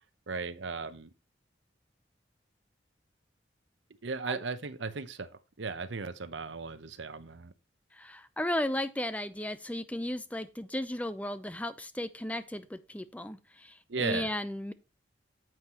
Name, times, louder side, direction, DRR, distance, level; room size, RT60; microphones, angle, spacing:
voice 1, 0.3-1.1 4.0-5.3 5.6-7.5 13.9-14.3, right 4 dB, 85° right, 0.9 m, -36 dB
voice 2, 8.0-14.7, left 1 dB, 10° left, 0.6 m, -35 dB
9.3 x 7.8 x 3.0 m
head